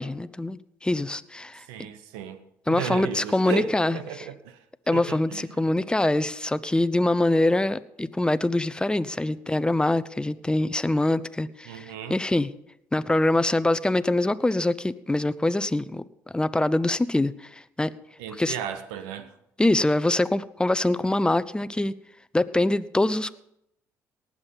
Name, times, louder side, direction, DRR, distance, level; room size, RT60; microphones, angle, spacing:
voice 1, 0.0-1.6 2.7-4.0 4.9-12.5 12.9-16.0 16.3-17.9 18.4-18.5 19.6-21.9 22.3-23.3, left 2 dB, 10° left, 0.7 m, -24 dB
voice 2, 1.6-2.4 2.7-4.6 4.9-5.6 11.6-12.2 18.2-19.4, right 8 dB, 85° right, 1.0 m, -35 dB
18.5 x 7.4 x 5.6 m
supercardioid pair, 60°, 8 cm